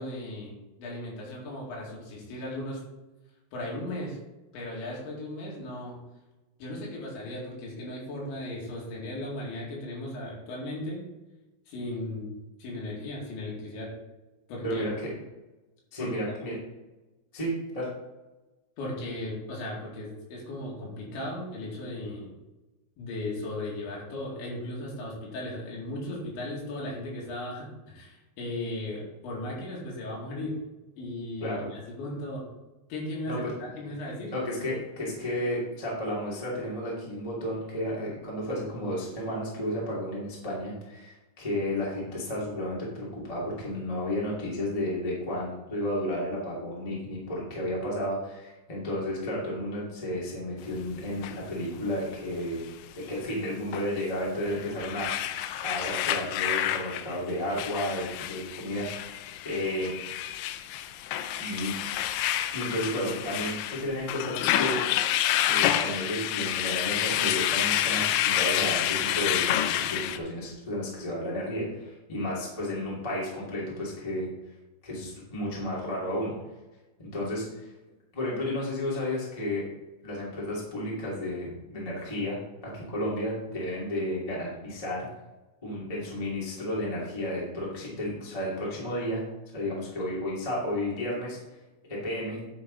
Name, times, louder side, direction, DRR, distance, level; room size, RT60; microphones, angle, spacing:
voice 1, 0.0-2.8 3.5-4.2 4.5-6.0 6.6-11.1 11.7-13.9 14.5-14.9 16.0-16.1 18.8-22.3 23.0-30.6 31.0-32.5 32.9-33.4 33.8-34.3, left 1 dB, 70° left, -3 dB, 4.4 m, -36 dB
voice 2, 15.9-16.5 17.3-17.9 31.4-31.7 33.3-33.5 34.3-52.6 52.9-55.4 55.6-59.1 59.4-59.9 61.4-61.7 62.5-64.8 65.5-74.3 74.8-76.3 77.0-77.7 78.1-79.6 80.0-85.1 85.6-89.2 89.5-91.4 91.9-92.4, left 1 dB, 15° left, -6 dB, 1.1 m, -32 dB
sound 1, 51.2-51.3 53.7-53.9 54.5-70.2, left 12 dB, 85° left, 2.7 m, -28 dB
10.5 x 5.7 x 4.0 m, 1.1 s
omnidirectional pair, 5.7 m